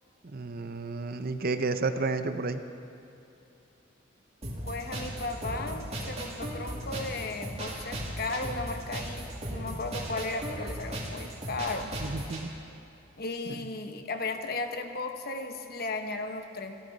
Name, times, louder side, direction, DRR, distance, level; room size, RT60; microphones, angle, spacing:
voice 1, 0.2-2.6 12.0-12.5 13.5-13.6, right 3 dB, 50° right, 9 dB, 0.7 m, -31 dB
sound 1, 4.4-12.4, right 1 dB, 35° right, 2.5 m, -37 dB
voice 2, 4.6-11.9 13.2-16.8, left 3 dB, 50° left, 6 dB, 1.1 m, -35 dB
26.0 x 12.5 x 4.1 m, 2.8 s
head